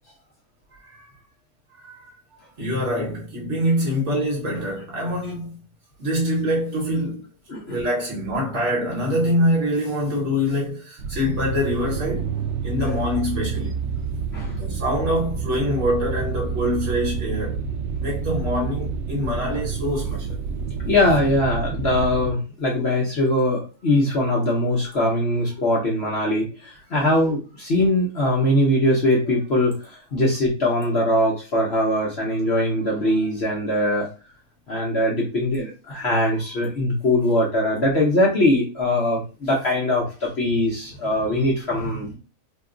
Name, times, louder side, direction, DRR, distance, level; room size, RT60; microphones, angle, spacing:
voice 1, 1.7-2.1 2.6-5.6 6.0-7.3 7.7-12.3 12.6-13.8 14.5-17.6 18.0-20.4, equal, 50° right, 1.2 m, -25 dB
sound 1, 11.0-22.3, right 6 dB, 80° right, 0.6 m, -28 dB
voice 2, 20.8-34.1 34.7-42.2, left 1 dB, 55° left, 0.8 m, -21 dB
2.9 x 2.3 x 3.7 m
omnidirectional pair, 1.7 m